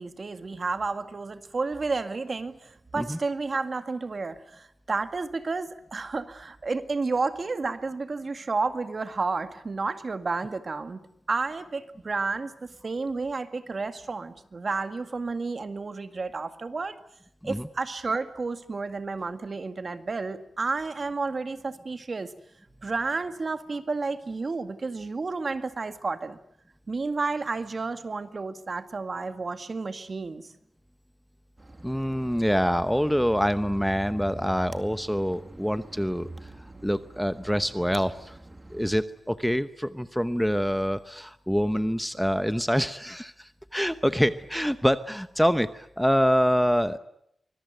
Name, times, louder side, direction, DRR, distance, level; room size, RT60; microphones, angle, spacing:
voice 1, 0.0-17.0 17.4-22.3 22.8-26.4 26.9-30.5, right 3 dB, 45° right, 9 dB, 2.0 m, -31 dB
sound 1, 31.6-39.0, right 2 dB, 25° right, 2.2 m, -45 dB
voice 2, 31.8-36.3 36.8-38.4 38.7-47.0, equal, ahead, 11 dB, 0.9 m, -25 dB
25.0 x 21.5 x 9.1 m, 0.76 s
wide cardioid pair, 120°, 0 cm